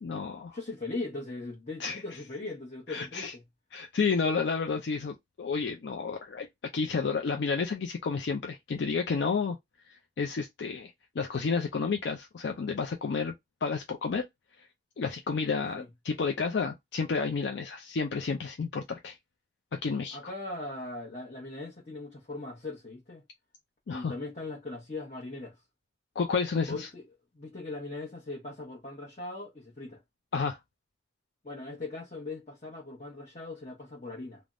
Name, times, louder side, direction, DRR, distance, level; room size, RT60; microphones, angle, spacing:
voice 1, 0.0-0.6 1.8-2.0 2.9-3.3 3.7-6.5 6.7-9.6 9.9-13.3 13.6-14.3 14.6-14.7 15.0-19.2 19.7-20.2 23.9-24.1 26.2-26.9 30.3-30.6, left 5 dB, 70° left, 0.4 m, -31 dB
voice 2, 0.5-3.4 15.8-15.9 20.1-23.2 23.9-25.6 26.7-27.0 27.3-30.0 31.4-34.4, left 2 dB, 35° left, 0.9 m, -39 dB
3.3 x 2.1 x 2.4 m
head